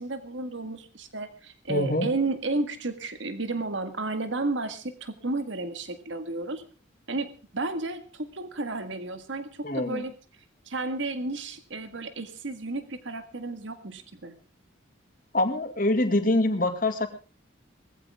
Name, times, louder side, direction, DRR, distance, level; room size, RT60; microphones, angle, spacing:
voice 1, 0.0-6.6 7.1-10.1 10.7-14.3, right 2 dB, 75° right, 9 dB, 1.8 m, -32 dB
voice 2, 1.7-2.1 9.6-10.0 15.3-17.1, left 1 dB, 45° left, 7 dB, 2.2 m, -24 dB
19.5 x 15.0 x 3.6 m, 0.38 s
head